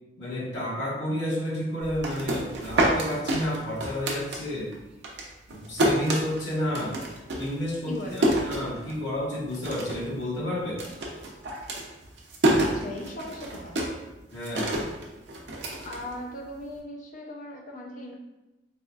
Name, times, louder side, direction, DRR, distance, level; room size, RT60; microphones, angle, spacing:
voice 1, 0.2-4.7 5.5-7.0 7.3-10.9 14.3-14.8, left 1 dB, 80° left, -7 dB, 1.2 m, -31 dB
sound 1, 1.8-4.8 5.0-9.2 9.5-10.1 10.4-16.6, right 1 dB, 70° right, 0.6 m, -28 dB
voice 2, 7.9-8.3 12.6-13.8 15.8-18.1, left 1 dB, 50° left, 0 dB, 0.5 m, -38 dB
4.1 x 2.3 x 2.4 m, 1.0 s
head